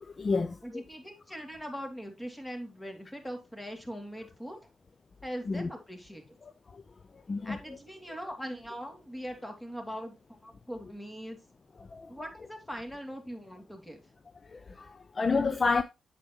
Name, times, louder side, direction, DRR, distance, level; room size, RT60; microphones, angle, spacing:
voice 1, 0.0-0.8 5.5-5.7 6.4-6.8 7.3-7.6 11.9-12.1 14.5-15.8, left 4 dB, 40° left, 0.6 m, -30 dB
voice 2, 0.6-4.6 5.2-6.4 7.4-10.2 10.4-11.4 12.1-14.0, equal, 10° left, 2.6 m, -41 dB
8.3 x 7.4 x 3.0 m
hypercardioid pair, 45°, 0 cm